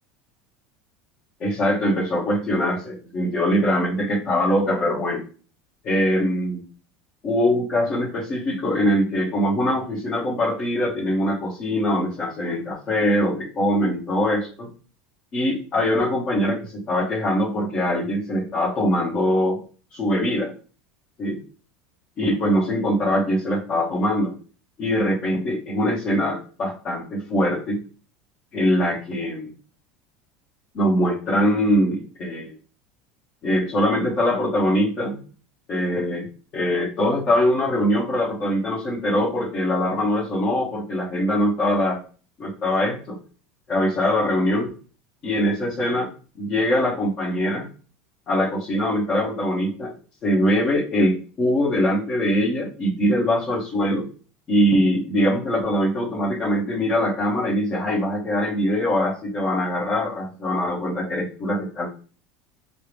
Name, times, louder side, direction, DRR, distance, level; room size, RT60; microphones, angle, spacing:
voice 1, 1.4-5.2 5.8-6.6 7.2-14.7 15.3-19.6 19.9-20.5 21.2-21.4 22.2-24.3 24.8-27.8 28.5-29.5 30.7-32.5 33.4-35.2 35.7-36.3 36.5-42.0 42.4-43.2 43.7-44.7 45.2-46.1 46.4-47.7 48.3-49.9 50.2-54.1 54.5-61.9, equal, 35° left, -7 dB, 1.0 m, -22 dB
5.3 x 2.0 x 3.3 m, 0.40 s
supercardioid pair, 135°, 0 cm